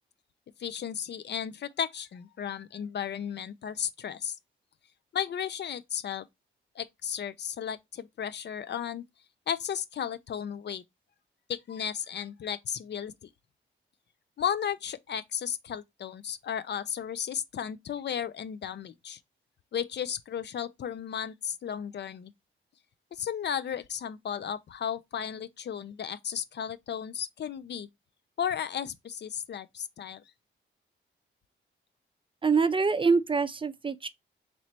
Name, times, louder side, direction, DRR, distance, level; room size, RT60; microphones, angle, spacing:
voice 1, 0.6-4.4 5.1-6.3 6.8-9.0 9.5-10.8 11.5-13.3 14.4-19.2 19.7-22.3 23.1-27.9 28.4-30.2, left 8 dB, 55° left, 0.4 m, -34 dB
voice 2, 32.4-34.1, right 4 dB, 25° right, 0.4 m, -25 dB
3.1 x 3.0 x 4.1 m
cardioid pair, 65°, 21 cm